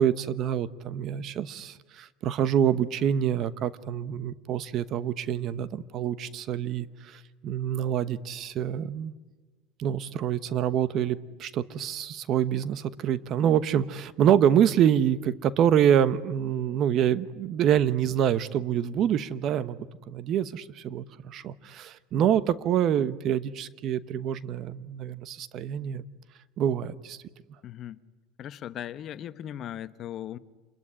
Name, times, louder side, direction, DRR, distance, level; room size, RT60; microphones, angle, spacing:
voice 1, 0.0-9.1 9.8-26.0 26.6-27.2, right 9 dB, 45° right, 1.0 m, -26 dB
voice 2, 27.6-28.0 28.4-30.4, left 11 dB, 45° left, 1.0 m, -38 dB
27.5 x 21.5 x 9.9 m
supercardioid pair, 120°, 0 cm